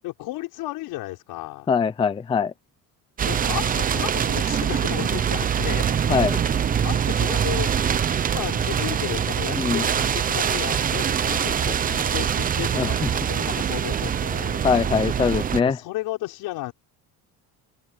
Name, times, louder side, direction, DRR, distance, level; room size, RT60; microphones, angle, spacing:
voice 1, 0.0-1.7 3.2-6.4 6.8-14.6 15.6-16.7, left 17 dB, 80° left, 5.4 m, -34 dB
voice 2, 1.7-2.5 6.1-6.3 9.5-9.9 12.8-12.9 14.6-15.8, left 6 dB, 15° left, 0.5 m, -22 dB
sound 1, 3.2-15.6, right 8 dB, 25° right, 0.7 m, -24 dB
open air
cardioid pair, 175°, 36 cm